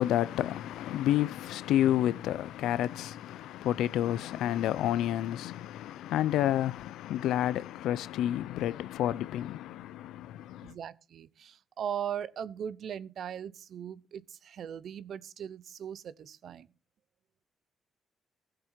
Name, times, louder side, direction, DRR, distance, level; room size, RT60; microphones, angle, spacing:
voice 1, 0.0-10.7, left 12 dB, 85° left, 0.5 m, -30 dB
voice 2, 10.6-16.7, right 9 dB, 65° right, 0.7 m, -39 dB
16.0 x 6.7 x 4.4 m
cardioid pair, 90°, 0 cm